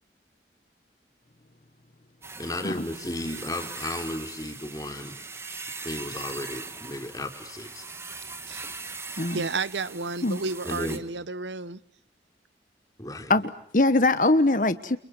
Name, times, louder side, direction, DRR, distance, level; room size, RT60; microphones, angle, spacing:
sound 1, 2.2-11.0, right 4 dB, 15° right, 1.7 m, -40 dB
voice 1, 2.4-5.2 5.8-7.8 10.6-11.0 13.0-13.3, left 1 dB, 20° left, 3.9 m, -34 dB
voice 2, 9.3-11.8, right 3 dB, 85° right, 1.0 m, -31 dB
voice 3, 13.3-15.0, left 2 dB, 45° left, 1.1 m, -22 dB
29.5 x 29.5 x 6.1 m
head